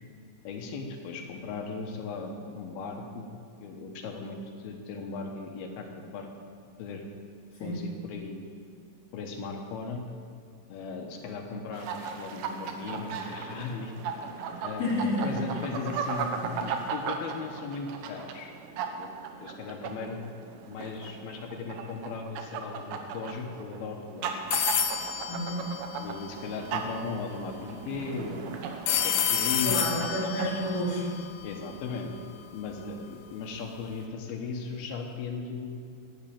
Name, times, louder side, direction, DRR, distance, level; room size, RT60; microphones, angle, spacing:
voice 1, 0.4-3.3 3.6-6.3 6.8-7.0 7.6-8.4 9.1-10.0 10.7-13.9 14.6-18.5 19.0-19.1 19.4-20.2 20.7-24.4 26.0-30.1 31.4-32.1 32.5-35.8, left 4 dB, 70° left, 3 dB, 2.8 m, -37 dB
sound 1, 11.7-30.7, right 6 dB, 85° right, 3.1 m, -37 dB
voice 2, 14.8-15.8 25.3-25.6 29.6-31.1, equal, 30° left, -6 dB, 3.3 m, -30 dB
sound 2, 24.5-26.5 28.9-31.9, left 8 dB, 85° left, 2.9 m, -30 dB
12.0 x 8.8 x 8.7 m, 2.2 s
omnidirectional pair, 4.9 m